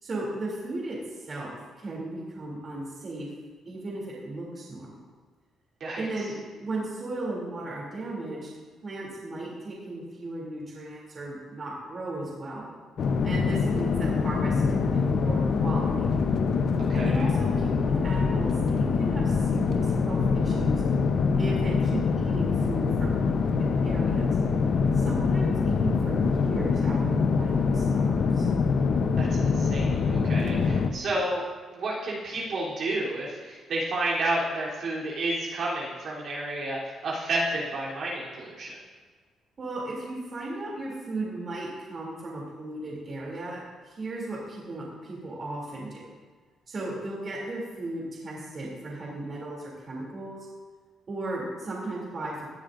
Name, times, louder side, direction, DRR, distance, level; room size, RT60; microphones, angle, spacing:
voice 1, 0.0-3.3 3.6-5.0 6.0-6.3 6.6-8.5 8.8-12.7 13.2-16.1 16.9-20.8 21.4-24.3 24.9-28.5 30.4-31.0 39.6-46.1 46.7-50.5 51.1-52.5, right 2 dB, 45° right, -4 dB, 3.0 m, -36 dB
voice 2, 5.8-6.3 16.9-17.3 29.2-31.4 31.7-38.8, right 2 dB, 60° right, -6 dB, 3.4 m, -31 dB
sound 1, 13.0-30.9, left 5 dB, 60° left, 0.8 m, -24 dB
17.5 x 10.0 x 2.6 m, 1.5 s
cardioid pair, 90°, 0 cm